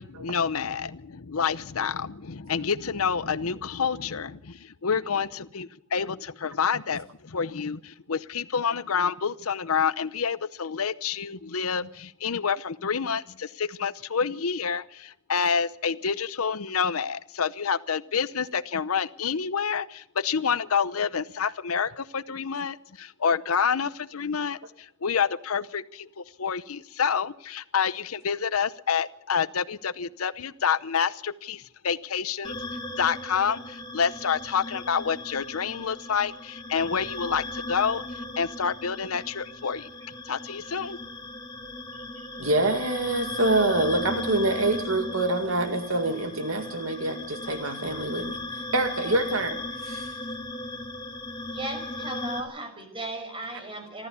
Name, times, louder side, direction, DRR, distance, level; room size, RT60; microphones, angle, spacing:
voice 1, 0.0-32.6 33.0-38.0 38.4-39.9 40.2-41.0, left 6 dB, 85° left, 16 dB, 0.8 m, -28 dB
sound 1, 32.4-52.4, left 2 dB, 20° left, 2.7 m, -37 dB
voice 2, 42.4-50.1, right 2 dB, 70° right, 7 dB, 2.2 m, -26 dB
voice 3, 51.5-54.1, right 2 dB, 25° right, 6 dB, 6.0 m, -36 dB
27.5 x 13.5 x 7.0 m, 0.73 s
head